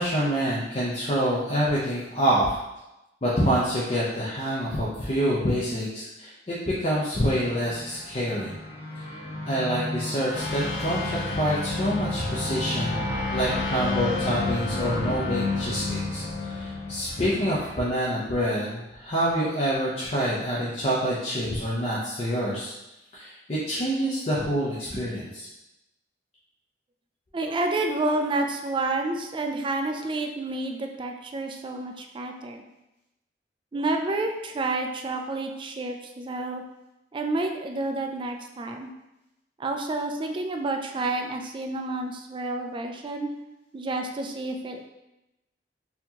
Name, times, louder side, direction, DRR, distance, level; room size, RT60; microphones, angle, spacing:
voice 1, 0.0-2.6 3.2-8.5 9.0-9.1 9.4-13.0 13.3-22.7 23.1-25.5, equal, 35° left, -7 dB, 0.6 m, -27 dB
sound 1, 7.4-17.7, left 2 dB, 60° left, 1.0 m, -31 dB
voice 2, 27.3-32.6 33.7-36.6 37.1-38.9 39.6-43.3 43.7-44.8, right 2 dB, 30° right, 4 dB, 0.3 m, -29 dB
4.2 x 2.8 x 2.8 m, 0.94 s
head